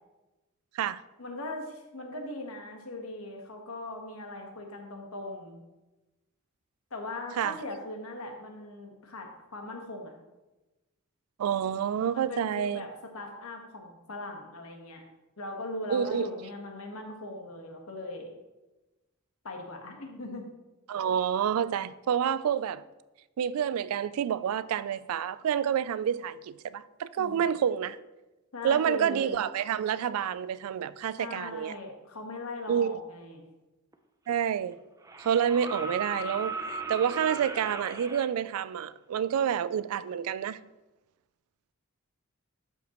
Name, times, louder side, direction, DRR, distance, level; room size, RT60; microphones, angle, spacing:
voice 1, 1.2-5.6 6.9-10.1 12.1-12.9 13.1-15.0 15.4-18.3 19.4-20.4 27.2-27.4 28.5-29.4 31.2-33.4, left 2 dB, 85° left, 1.3 m, -39 dB
voice 2, 11.4-12.8 15.9-16.3 20.9-22.8 23.4-28.0 28.6-31.7 32.7-33.0 34.3-34.8 35.2-40.6, right 8 dB, 85° right, 0.3 m, -28 dB
sound 1, 33.9-34.0 35.0-38.3 40.0-40.1, right 3 dB, 15° right, 0.5 m, -37 dB
12.0 x 5.1 x 3.0 m
head